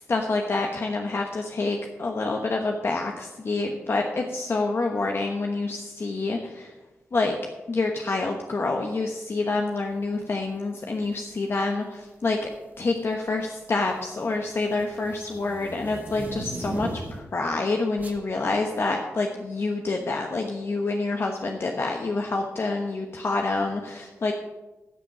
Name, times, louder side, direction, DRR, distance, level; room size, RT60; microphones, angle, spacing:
voice 1, 0.1-6.7 7.1-7.4 7.7-12.4 12.8-24.3, left 3 dB, 50° left, 2 dB, 1.1 m, -27 dB
sound 1, 11.1-11.3 12.3-12.8 13.1-17.4 18.0-18.2, right 2 dB, 30° right, 1.4 m, -37 dB
13.0 x 6.8 x 6.1 m, 1.1 s
cardioid pair, 85°, 5 cm